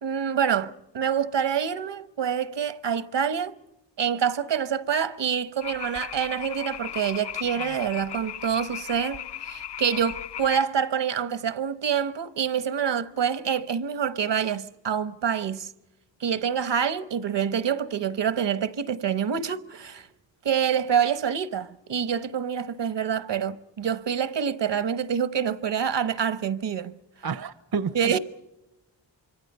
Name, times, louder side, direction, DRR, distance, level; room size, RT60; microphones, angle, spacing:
voice 1, 0.0-3.6 4.0-15.7 16.2-20.1 20.4-26.9 27.9-28.2, right 8 dB, 70° right, 1.1 m, -26 dB
sound 1, 5.6-10.7, left 11 dB, 65° left, 0.7 m, -37 dB
voice 2, 27.2-28.2, right 6 dB, 55° right, 0.8 m, -30 dB
26.5 x 25.0 x 5.5 m
cardioid pair, 75°, 44 cm